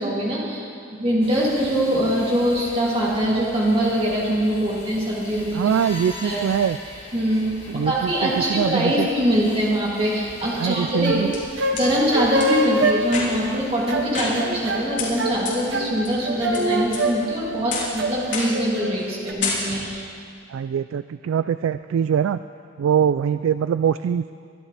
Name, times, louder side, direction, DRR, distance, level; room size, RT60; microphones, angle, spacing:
voice 1, 0.0-5.6 6.2-6.5 7.1-11.2 11.7-20.1, equal, 30° right, -6 dB, 2.8 m, -23 dB
sound 1, 1.2-18.2, left 2 dB, 30° left, 1.7 m, -42 dB
voice 2, 5.5-6.8 7.7-9.1 10.6-11.3 20.5-22.4 22.8-24.3, right 8 dB, 85° right, 12 dB, 0.3 m, -23 dB
sound 2, 10.8-19.3, right 1 dB, 65° right, 1.1 m, -26 dB
sound 3, 11.3-11.9 12.4-12.5 13.0-13.6 14.1-14.7 15.0-15.1 15.5-15.6 16.0-16.6 16.9-17.3 17.7-18.0 18.3-18.7 19.0-19.1 19.4-20.0, left 4 dB, 65° left, 3.6 m, -29 dB
23.5 x 12.5 x 3.4 m, 2.3 s
head